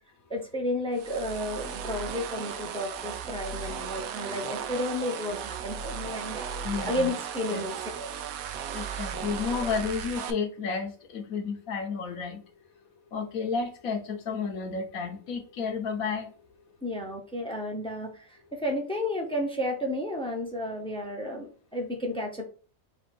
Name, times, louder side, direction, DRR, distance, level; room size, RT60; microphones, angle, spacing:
voice 1, 0.3-8.1 9.5-9.7 16.8-22.4, left 1 dB, 5° left, 0.5 m, -32 dB
sound 1, 0.9-10.3, right 7 dB, 80° right, 1.0 m, -36 dB
voice 2, 6.6-7.1 7.5-7.6 8.7-12.4 13.1-16.3, left 5 dB, 75° left, 1.3 m, -32 dB
4.3 x 2.5 x 4.2 m
omnidirectional pair, 1.5 m